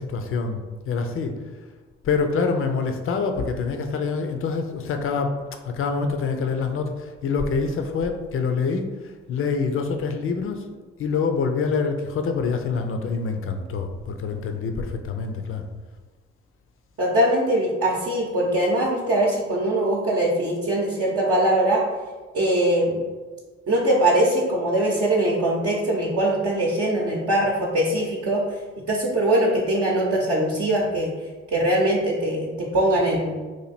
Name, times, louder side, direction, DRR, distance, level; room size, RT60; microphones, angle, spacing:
voice 1, 0.0-1.4 2.0-10.6 11.0-15.7, left 5 dB, 40° left, 6 dB, 0.5 m, -26 dB
voice 2, 17.0-21.8 22.3-23.0 23.7-28.4 28.9-31.1 31.5-33.4, right 1 dB, 45° right, -4 dB, 0.8 m, -22 dB
3.0 x 2.5 x 4.0 m, 1.3 s
hypercardioid pair, 45°, 33 cm